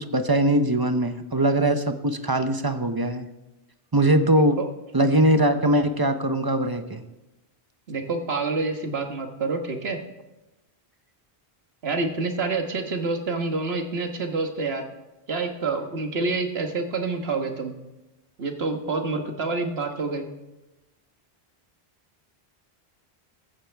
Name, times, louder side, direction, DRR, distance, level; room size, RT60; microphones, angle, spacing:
voice 1, 0.0-3.3 3.9-4.6 4.9-7.0, right 1 dB, 25° right, 9 dB, 0.7 m, -21 dB
voice 2, 7.9-10.0 11.8-14.8 15.3-17.7 18.4-20.3, right 3 dB, 75° right, 5 dB, 1.6 m, -27 dB
15.0 x 14.0 x 3.4 m, 1.0 s
omnidirectional pair, 1.0 m